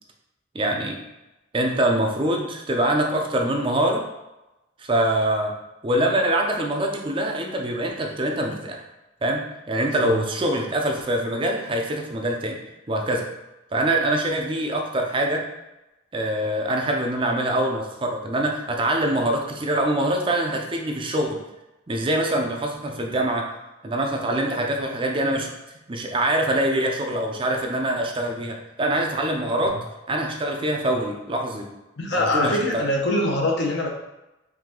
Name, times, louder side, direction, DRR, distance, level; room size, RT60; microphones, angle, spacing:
voice 1, 0.5-1.0 1.5-4.0 4.8-5.5 5.8-8.8 9.2-12.6 12.9-13.3 13.7-15.4 16.1-21.4 21.9-23.5 23.8-25.5 25.9-29.8 30.1-31.6 32.1-32.9, right 1 dB, 25° right, 2 dB, 0.5 m, -24 dB
voice 2, 9.9-10.2 29.7-29.8 32.0-33.9, left 1 dB, 65° left, 0 dB, 0.9 m, -24 dB
4.7 x 2.7 x 3.7 m, 0.97 s
head